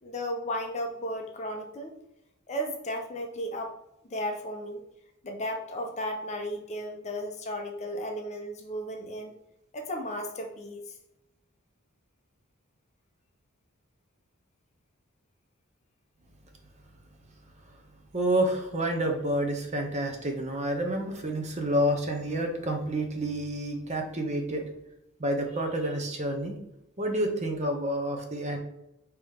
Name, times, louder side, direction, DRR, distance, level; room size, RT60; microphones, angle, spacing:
voice 1, 0.0-1.9 2.5-3.7 4.0-4.8 5.2-9.4 9.7-10.8, equal, 30° left, 3 dB, 0.7 m, -34 dB
voice 2, 18.1-24.6 25.2-26.6 27.0-28.6, right 1 dB, 30° right, 3 dB, 0.7 m, -29 dB
5.2 x 3.0 x 3.4 m, 0.85 s
head